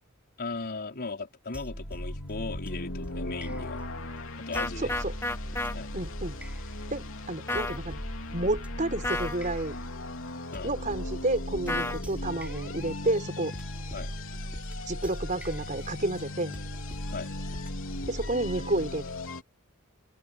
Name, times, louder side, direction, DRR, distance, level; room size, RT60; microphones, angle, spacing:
voice 1, 0.4-3.8 4.4-4.9 5.7-5.9 10.5-10.7 13.9-14.1 17.1-17.3, left 3 dB, 45° left, 4.8 m, -37 dB
sound 1, 1.5-19.3, equal, 5° right, 3.8 m, -40 dB
sound 2, 1.6-19.4, left 2 dB, 65° left, 3.6 m, -39 dB
sound 3, 4.6-5.7 7.5-7.8 9.0-9.4 11.7-12.0, left 2 dB, 10° left, 2.4 m, -30 dB
voice 2, 4.8-5.1 5.9-6.4 6.9-8.0 8.3-9.7 10.6-13.5 14.9-16.6 18.1-19.0, right 2 dB, 35° right, 4.9 m, -30 dB
open air
head